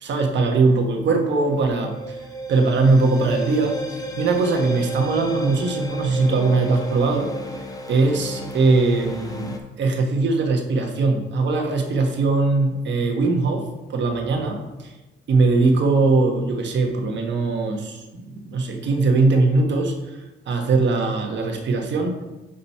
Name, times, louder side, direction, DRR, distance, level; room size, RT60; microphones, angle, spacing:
voice 1, 0.0-2.0 2.5-7.3 7.9-14.9 15.3-20.0 20.5-22.2, right 3 dB, 65° right, 3 dB, 1.2 m, -21 dB
sound 1, 0.9-9.6, right 1 dB, 20° left, 0.9 m, -32 dB
5.1 x 4.3 x 5.7 m, 1.1 s
cardioid pair, 90°, 20 cm